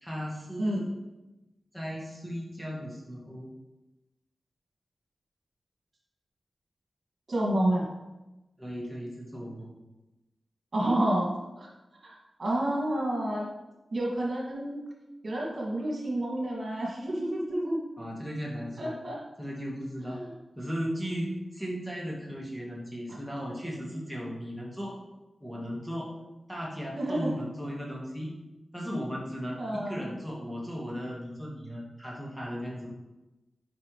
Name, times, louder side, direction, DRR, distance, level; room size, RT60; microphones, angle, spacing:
voice 1, 0.0-0.8 1.7-3.5 8.6-9.7 18.0-18.9 19.4-20.2 20.5-24.9 25.4-26.1 26.5-28.3 28.7-32.9, equal, 5° left, -3 dB, 1.4 m, -36 dB
voice 2, 7.3-7.8 10.7-11.7 12.0-12.1 12.4-13.5 13.9-14.8 15.2-17.8 18.8-19.2 20.1-20.3 27.0-27.3 29.6-30.0, right 1 dB, 50° right, -3 dB, 1.9 m, -29 dB
8.4 x 5.2 x 3.1 m, 1.0 s
wide cardioid pair, 120°, 0 cm